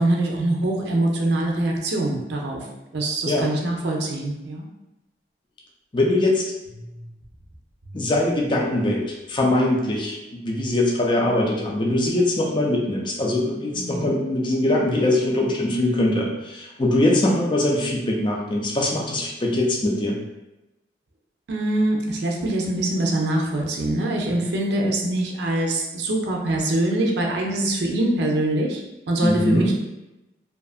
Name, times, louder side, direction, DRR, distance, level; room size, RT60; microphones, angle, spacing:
voice 1, 0.0-2.7 2.9-4.6 6.8-7.0 13.7-14.1 21.5-29.7, right 1 dB, 75° right, 0 dB, 0.5 m, -24 dB
voice 2, 5.9-6.5 7.9-20.2 29.2-29.7, left 1 dB, 25° left, -2 dB, 0.4 m, -22 dB
2.6 x 2.4 x 2.4 m, 0.97 s
head